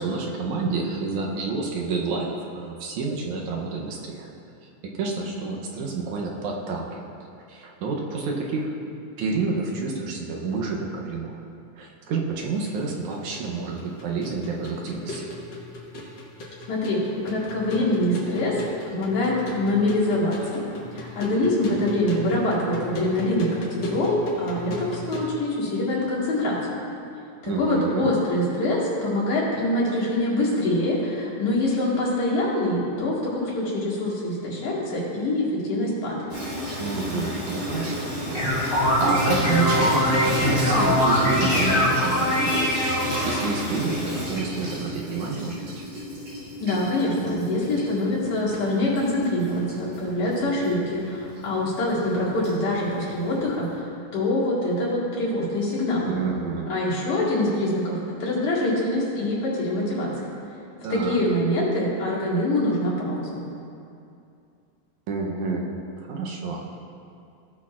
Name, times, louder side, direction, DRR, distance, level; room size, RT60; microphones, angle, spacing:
voice 1, 0.0-4.3 4.9-7.0 7.5-8.8 9.2-11.3 11.8-15.3 27.5-28.1 36.8-45.9 56.0-56.7 60.8-61.2 65.1-65.7 66.0-66.6, right 4 dB, 75° right, -1 dB, 2.1 m, -29 dB
sound 1, 12.4-25.3, left 1 dB, 50° left, 1.3 m, -37 dB
voice 2, 16.7-18.5 18.9-20.6 20.9-26.7 27.4-36.2 46.6-56.1 56.7-60.3 60.9-63.4, left 1 dB, 75° left, -7 dB, 3.4 m, -24 dB
Water tap faucet / Sink (filling or washing), 36.3-53.8, equal, 45° right, 3.1 m, -32 dB
sound 2, 38.1-43.3, left 1 dB, 25° left, 1.5 m, -22 dB
16.5 x 6.3 x 2.5 m, 2.5 s
omnidirectional pair, 3.5 m